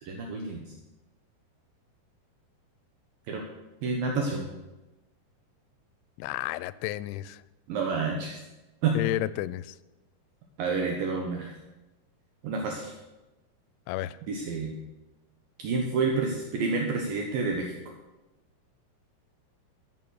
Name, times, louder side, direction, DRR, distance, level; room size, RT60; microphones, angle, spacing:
voice 1, 0.0-0.7 3.3-3.5 3.8-4.5 7.7-8.4 8.8-9.0 10.6-11.5 12.4-13.0 14.3-14.8 15.6-17.7, right 4 dB, 70° right, 2 dB, 2.7 m, -29 dB
voice 2, 6.2-7.4 9.0-9.8 13.9-14.2, left 14 dB, 90° left, 17 dB, 2.6 m, -31 dB
13.0 x 9.1 x 6.4 m, 1.0 s
omnidirectional pair, 4.5 m